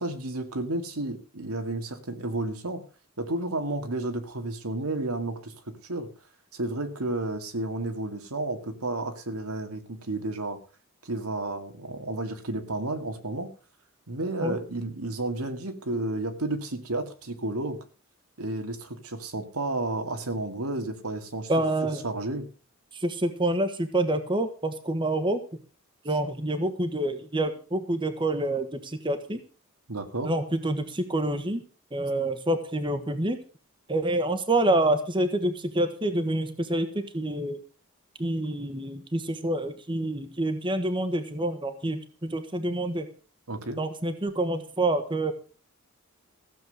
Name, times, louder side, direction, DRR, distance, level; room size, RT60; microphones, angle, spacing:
voice 1, 0.0-2.8 3.2-5.5 5.8-6.1 6.5-10.6 11.0-13.5 14.1-17.8 18.4-21.5 22.0-22.5 29.9-30.3 43.5-43.8, right 2 dB, 85° right, 6 dB, 2.2 m, -32 dB
voice 2, 21.5-22.0 22.9-25.4 26.0-29.4 30.2-31.6 31.9-33.4 33.9-37.6 38.2-43.1 43.8-45.3, right 1 dB, 20° right, 8 dB, 1.4 m, -27 dB
15.5 x 7.7 x 6.5 m, 0.37 s
head